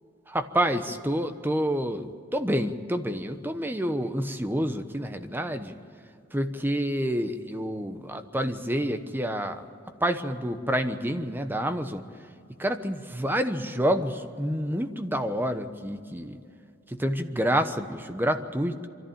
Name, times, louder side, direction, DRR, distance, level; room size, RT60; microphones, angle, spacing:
voice 1, 0.3-5.8 6.3-9.6 10.0-12.0 12.6-16.4 16.9-18.9, equal, 10° right, 8 dB, 1.0 m, -28 dB
24.0 x 14.0 x 8.8 m, 2.5 s
head